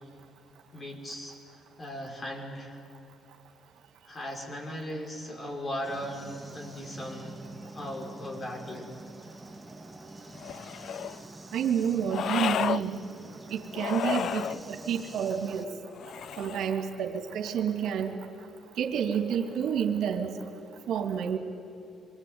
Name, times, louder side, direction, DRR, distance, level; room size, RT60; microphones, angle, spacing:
voice 1, 0.7-2.8 4.1-7.4 7.7-8.9, equal, 30° left, 2 dB, 5.8 m, -38 dB
sound 1, 5.8-15.6, right 2 dB, 10° right, 2.2 m, -46 dB
sound 2, 10.4-11.2 12.1-12.8 13.7-14.6 15.9-16.8, left 9 dB, 70° left, 0.6 m, -32 dB
voice 2, 11.5-13.0 13.5-15.7 16.4-18.2 18.8-20.4 20.9-21.4, right 8 dB, 75° right, 5 dB, 2.6 m, -29 dB
27.0 x 22.5 x 9.7 m, 2.7 s
cardioid pair, 90°, 0 cm